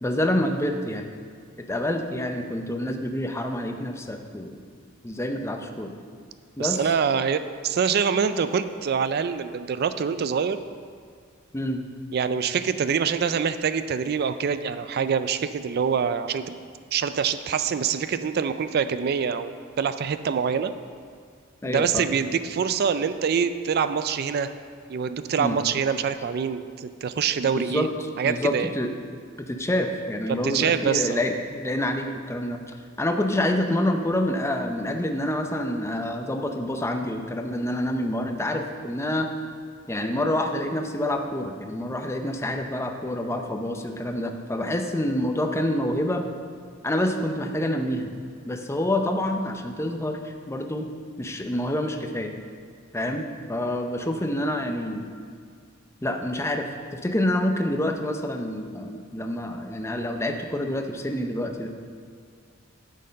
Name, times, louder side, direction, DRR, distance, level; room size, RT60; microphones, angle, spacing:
voice 1, 0.0-1.1 1.6-4.6 5.0-5.9 6.6-6.9 11.5-11.8 21.6-22.1 25.4-25.6 27.5-27.9 28.2-28.9 29.4-39.3 39.9-46.2 46.8-48.1 48.4-50.9 51.2-52.3 52.9-55.1 56.0-56.7 56.9-61.7, left 1 dB, 15° left, 4 dB, 0.6 m, -27 dB
voice 2, 6.6-10.6 12.1-16.6 16.9-20.7 21.6-24.5 24.9-27.9 28.2-28.7 30.3-31.2, right 6 dB, 50° right, 12 dB, 0.3 m, -25 dB
9.3 x 6.6 x 5.2 m, 2.1 s
head